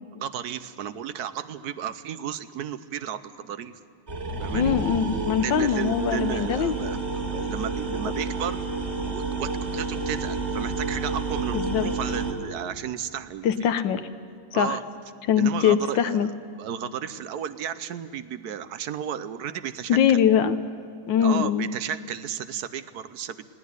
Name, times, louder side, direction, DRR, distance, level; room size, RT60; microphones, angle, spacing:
voice 1, 0.1-3.8 4.4-4.8 5.4-8.6 9.0-13.5 14.5-14.8 15.4-16.3 16.6-20.2 21.1-23.5, right 9 dB, 65° right, 13 dB, 1.2 m, -33 dB
sound 1, 4.1-12.3, right 3 dB, 35° right, 2.2 m, -30 dB
voice 2, 4.5-6.7 11.5-11.9 13.4-14.0 14.5-14.8 15.3-16.3 19.9-20.6 21.1-21.7, left 8 dB, 85° left, 10 dB, 1.6 m, -22 dB
19.0 x 17.5 x 9.6 m, 2.4 s
omnidirectional pair, 2.0 m